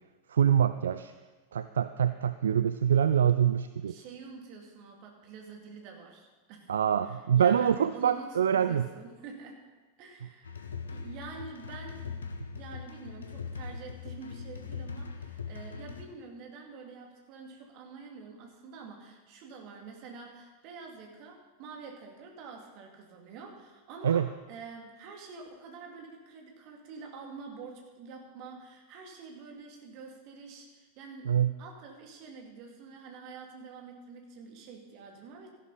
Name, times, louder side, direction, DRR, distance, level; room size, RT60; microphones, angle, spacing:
voice 1, 0.3-1.1 1.5-4.0 6.7-8.9 24.0-24.3 31.3-31.6, right 9 dB, 65° right, 12 dB, 0.4 m, -25 dB
voice 2, 3.8-6.7 7.1-9.6 10.0-12.2 12.5-35.5, right 4 dB, 45° right, 2 dB, 2.4 m, -47 dB
sound 1, 10.4-16.0, left 5 dB, 70° left, 1.0 m, -41 dB
14.0 x 11.5 x 4.1 m, 1.3 s
figure-of-eight pair, 90°, 0 cm